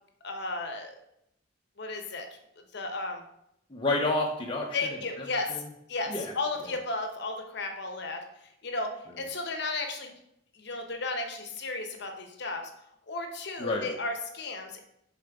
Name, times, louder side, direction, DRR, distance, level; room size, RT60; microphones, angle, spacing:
voice 1, 0.2-0.9 1.8-2.3 2.7-3.2 4.7-5.6 5.9-8.2 8.6-10.1 10.6-12.6 13.1-14.8, left 3 dB, 55° left, 4 dB, 0.8 m, -34 dB
voice 2, 3.7-4.8 5.2-5.6 6.1-6.3 13.6-13.9, left 2 dB, 25° left, -1 dB, 0.6 m, -29 dB
7.0 x 3.9 x 3.5 m, 0.78 s
head